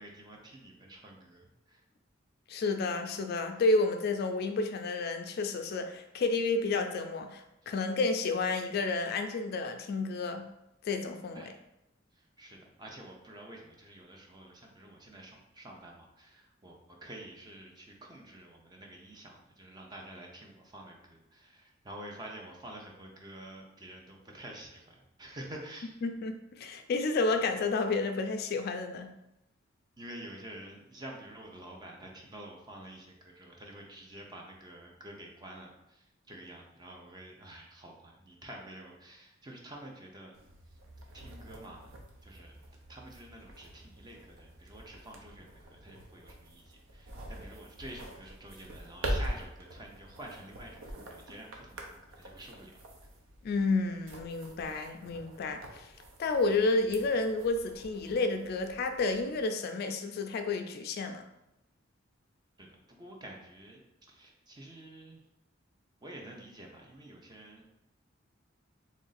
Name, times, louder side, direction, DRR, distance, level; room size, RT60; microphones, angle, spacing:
voice 1, 0.0-1.8 11.3-11.5 12.1-26.0 30.0-40.3 41.1-41.9 42.2-42.6 42.9-52.8 62.6-63.8 64.1-65.2 66.0-67.6, right 1 dB, 20° right, 0 dB, 0.6 m, -49 dB
voice 2, 2.5-10.5 10.8-11.5 26.0-29.1 53.4-55.9 56.2-61.2, left 3 dB, 50° left, 7 dB, 0.3 m, -31 dB
sound 1, 40.3-59.4, right 1 dB, 85° right, 0.6 m, -44 dB
3.1 x 2.5 x 3.9 m, 0.88 s
head